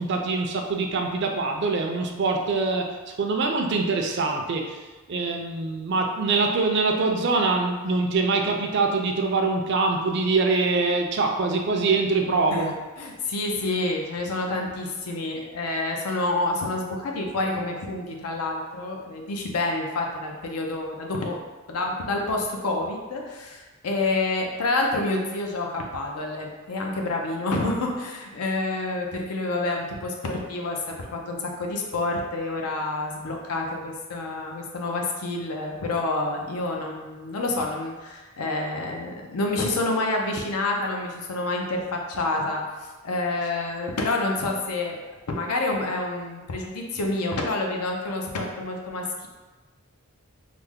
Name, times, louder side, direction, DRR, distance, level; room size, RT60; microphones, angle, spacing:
voice 1, 0.0-4.8 5.1-12.7, right 3 dB, 50° right, 3 dB, 0.4 m, -24 dB
voice 2, 13.0-21.4 21.7-45.0 45.3-49.3, left 2 dB, 85° left, 1 dB, 0.5 m, -28 dB
3.2 x 2.0 x 3.5 m, 1.2 s
head